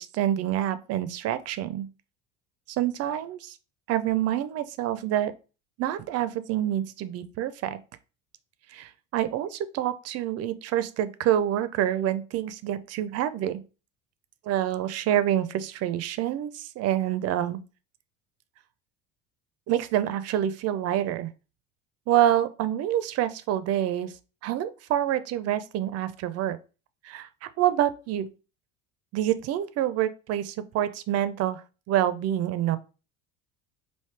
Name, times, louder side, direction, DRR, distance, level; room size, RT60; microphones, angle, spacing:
voice 1, 0.0-1.9 2.7-3.6 3.9-5.3 5.8-7.8 8.7-13.6 14.4-17.6 19.7-21.3 22.1-24.1 24.4-26.6 27.0-28.3 29.1-32.8, right 11 dB, 50° right, 0.4 m, -27 dB
3.2 x 2.7 x 3.2 m
supercardioid pair, 90°, 33 cm